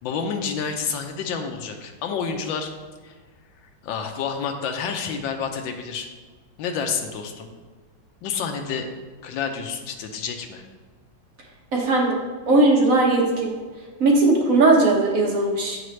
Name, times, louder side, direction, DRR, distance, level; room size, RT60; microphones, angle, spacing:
voice 1, 0.0-2.7 3.0-3.2 3.8-6.1 6.6-7.5 8.2-8.9 9.2-10.6, left 6 dB, 90° left, 4 dB, 1.4 m, -29 dB
voice 2, 11.7-12.2 12.5-13.5 14.0-15.8, right 2 dB, 55° right, -1 dB, 1.2 m, -18 dB
7.7 x 5.8 x 3.2 m, 1.4 s
omnidirectional pair, 2.1 m